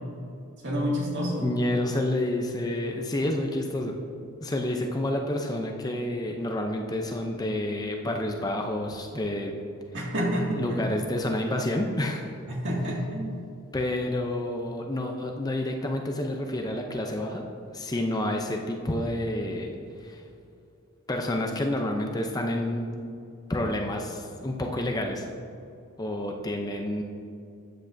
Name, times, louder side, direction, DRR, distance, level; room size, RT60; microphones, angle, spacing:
voice 1, 0.6-1.5 9.9-10.6 12.5-13.3, equal, 55° right, -3 dB, 2.0 m, -28 dB
voice 2, 1.4-4.0 4.4-9.5 10.6-12.2 13.7-17.4 17.7-19.7 20.0-20.2 21.1-22.9 23.5-25.2 26.0-27.0, left 1 dB, 15° left, 2 dB, 0.5 m, -29 dB
13.0 x 8.6 x 2.6 m, 2.6 s
head